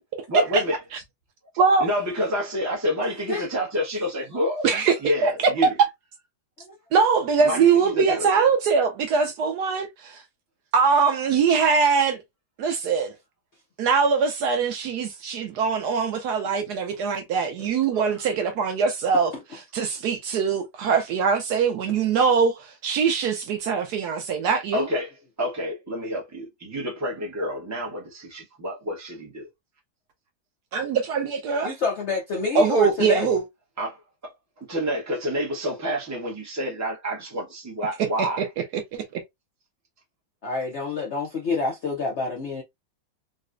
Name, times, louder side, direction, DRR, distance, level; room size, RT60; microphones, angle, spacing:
voice 1, 0.3-0.8 1.8-4.7 5.0-5.8 7.4-8.3 17.9-18.2 24.7-29.5 33.8-33.9 34.6-38.5, equal, 25° right, 0.3 m, -28 dB
voice 2, 1.6-1.9 4.6-4.9 5.2-5.3 6.9-10.2 10.7-12.2 12.6-13.1 13.8-19.3 19.7-24.9 30.7-31.7 32.5-33.4 38.2-38.3 38.9-39.2, right 5 dB, 70° right, 1.0 m, -22 dB
voice 3, 31.6-33.4 40.4-42.6, left 4 dB, 80° left, 0.6 m, -27 dB
3.9 x 2.1 x 2.5 m
omnidirectional pair, 2.1 m